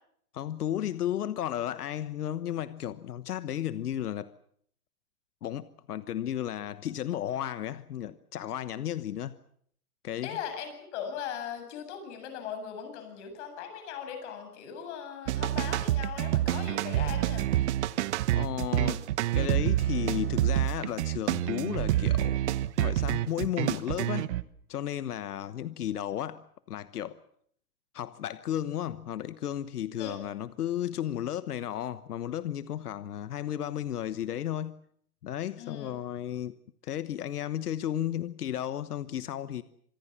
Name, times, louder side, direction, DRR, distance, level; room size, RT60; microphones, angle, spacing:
voice 1, 0.3-4.3 5.4-9.4 10.0-10.4 18.3-19.0 19.3-22.4 22.8-24.3 24.7-27.2 27.9-34.7 35.2-36.5 36.8-39.6, left 11 dB, 80° left, 1.2 m, -34 dB
voice 2, 10.2-17.5 30.0-30.3 35.6-35.9, left 8 dB, 50° left, 7.8 m, -39 dB
sound 1, 15.3-24.4, right 14 dB, 50° right, 1.1 m, -28 dB
26.0 x 21.0 x 7.4 m
hypercardioid pair, 145°, 45 cm